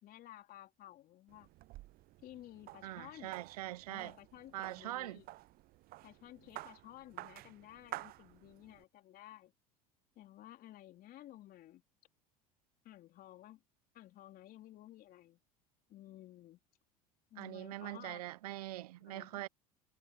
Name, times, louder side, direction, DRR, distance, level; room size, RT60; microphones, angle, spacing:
voice 1, 0.0-1.5 2.2-3.4 3.9-5.3 6.0-9.5 10.2-11.8 12.8-13.6 13.9-15.4 15.9-16.6 17.3-18.2 19.0-19.4, left 14 dB, 50° left, 3.7 m, -54 dB
sound 1, 1.3-8.8, right 18 dB, 55° right, 0.8 m, -51 dB
voice 2, 2.8-4.2 4.5-5.2 17.4-19.5, right 16 dB, 85° right, 0.5 m, -43 dB
hypercardioid pair, 80°, 19 cm